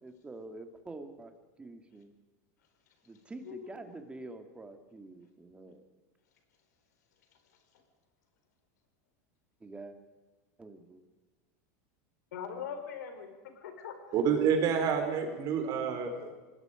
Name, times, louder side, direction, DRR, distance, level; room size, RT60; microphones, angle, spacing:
voice 1, 0.0-2.1 3.1-5.8 9.6-9.9 10.6-11.0, right 2 dB, 10° right, 6 dB, 2.4 m, -47 dB
voice 2, 12.3-14.1, left 7 dB, 85° left, 6 dB, 4.4 m, -41 dB
voice 3, 14.1-16.3, right 7 dB, 45° right, 5 dB, 4.3 m, -28 dB
26.0 x 20.0 x 5.2 m, 1.3 s
supercardioid pair, 120°, 9 cm